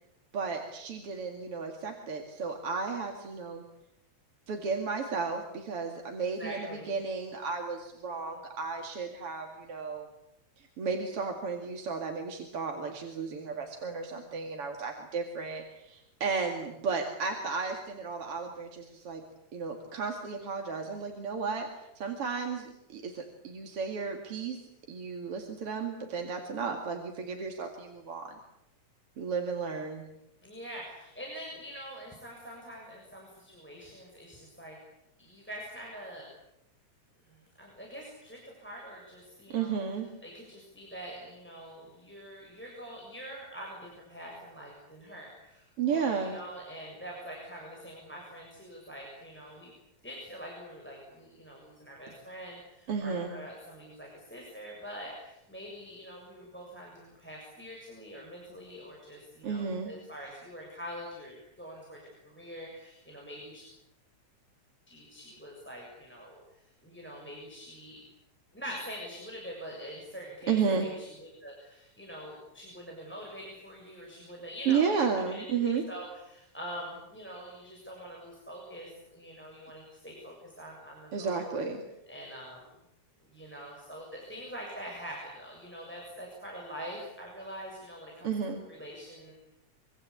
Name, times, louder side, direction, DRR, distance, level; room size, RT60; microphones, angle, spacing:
voice 1, 0.3-3.6 4.5-10.1 10.6-19.2 19.5-21.7 22.0-24.6 24.9-28.3 29.2-30.0 39.5-40.1 45.8-46.4 52.9-53.3 59.4-59.9 70.5-70.9 74.7-75.8 81.1-81.8 88.2-88.6, right 5 dB, 50° right, 3 dB, 3.1 m, -33 dB
voice 2, 6.2-7.0 30.4-34.8 35.2-36.3 37.3-39.7 40.2-49.7 50.0-63.7 64.9-66.4 66.8-68.0 68.5-75.0 75.3-81.5 82.1-82.7 83.2-88.3 88.7-89.3, equal, 5° left, -2 dB, 7.0 m, -44 dB
26.5 x 25.0 x 8.5 m, 0.85 s
omnidirectional pair, 3.3 m